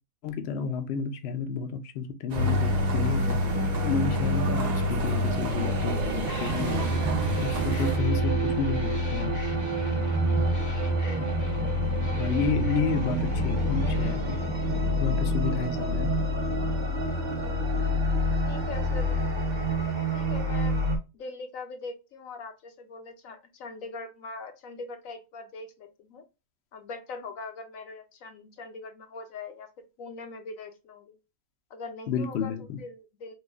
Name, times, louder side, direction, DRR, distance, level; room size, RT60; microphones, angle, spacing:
voice 1, 0.2-3.4 3.8-7.0 7.4-9.3 12.2-14.4 15.0-16.1 32.1-32.8, left 6 dB, 60° left, 7 dB, 0.7 m, -31 dB
sound 1, 2.3-8.0, right 4 dB, 60° right, 0.4 m, -33 dB
sound 2, 2.4-21.0, equal, 40° right, 0.9 m, -27 dB
sound 3, 6.2-16.8, equal, 30° left, 0.3 m, -37 dB
voice 2, 11.0-12.0 12.7-12.8 17.3-17.7 18.5-19.2 20.1-20.8 21.1-26.2 26.7-31.2 31.7-33.3, left 3 dB, 80° left, 6 dB, 1.1 m, -42 dB
3.2 x 2.3 x 3.4 m, 0.27 s
omnidirectional pair, 1.4 m